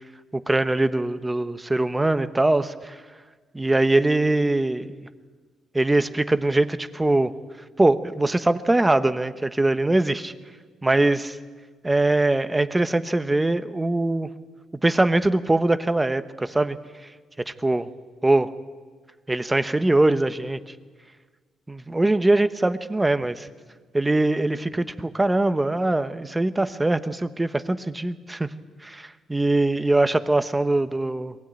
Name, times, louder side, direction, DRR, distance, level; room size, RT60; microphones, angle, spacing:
voice 1, 0.3-3.0 3.5-5.1 5.7-7.3 7.8-10.3 10.8-11.4 11.8-14.3 14.8-16.8 17.6-17.9 18.2-18.5 19.3-20.6 21.7-23.5 23.9-28.5 28.8-31.3, right 2 dB, 15° right, 11 dB, 1.0 m, -22 dB
23.0 x 16.5 x 8.9 m, 1.5 s
cardioid pair, 90°, 0 cm